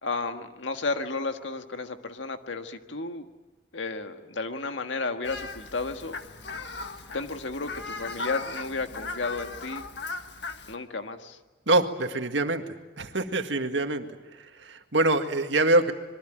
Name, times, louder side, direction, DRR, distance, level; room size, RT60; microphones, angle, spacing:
voice 1, 0.0-3.3 3.7-6.2 7.1-9.8 10.7-11.4, left 3 dB, 85° left, 7 dB, 1.7 m, -33 dB
Fowl, 5.2-10.7, left 3 dB, 70° left, 1.7 m, -38 dB
voice 2, 11.7-12.6 13.0-14.0 14.7-15.9, right 2 dB, 75° right, 6 dB, 2.0 m, -24 dB
26.5 x 22.5 x 9.0 m, 1.2 s
head